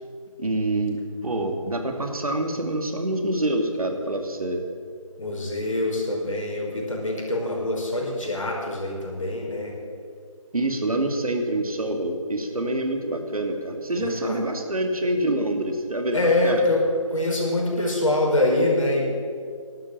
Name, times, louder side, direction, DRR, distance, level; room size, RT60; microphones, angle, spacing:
voice 1, 0.4-1.0 1.2-4.6 10.5-16.6, right 1 dB, 85° right, 4 dB, 2.6 m, -26 dB
voice 2, 5.2-9.7 13.9-14.4 16.1-16.8 17.1-19.0, left 2 dB, 65° left, -1 dB, 5.2 m, -24 dB
13.0 x 12.0 x 7.5 m, 2.1 s
figure-of-eight pair, 180°, 18 cm